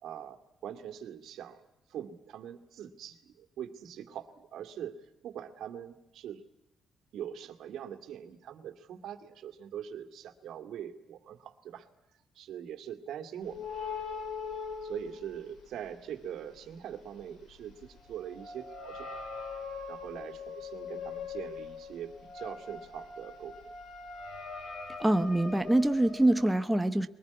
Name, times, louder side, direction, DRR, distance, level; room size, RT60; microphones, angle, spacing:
voice 1, 0.0-6.4 7.1-11.9 12.3-13.7 14.8-19.1 19.9-23.7, right 9 dB, 80° right, 7 dB, 2.2 m, -43 dB
sound 1, 13.4-15.9 16.2-26.4, left 5 dB, 75° left, 5.0 m, -42 dB
voice 2, 25.0-27.1, right 1 dB, 5° right, 8 dB, 1.0 m, -25 dB
22.5 x 19.5 x 9.5 m, 0.90 s
cardioid pair, 125°, 0 cm